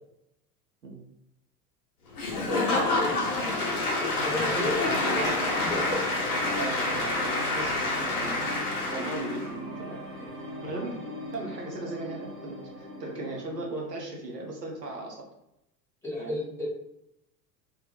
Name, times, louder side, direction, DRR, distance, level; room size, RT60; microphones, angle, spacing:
Applause / Crowd, 2.2-9.5, left 2 dB, 65° left, 0.7 m, -28 dB
voice 1, 2.3-3.1 4.1-4.7 5.0-5.3 5.6-6.0 10.2-10.3 16.0-16.6, left 1 dB, 5° left, -7 dB, 0.7 m, -33 dB
voice 2, 4.6-5.6 6.6-8.5 8.9-10.0 10.6-11.0 11.3-15.3 16.2-16.3, right 2 dB, 85° right, 0 dB, 0.7 m, -37 dB
sound 1, 4.8-13.6, equal, 55° right, 1.0 m, -39 dB
2.1 x 2.1 x 2.8 m, 0.83 s
figure-of-eight pair, 80°, 47 cm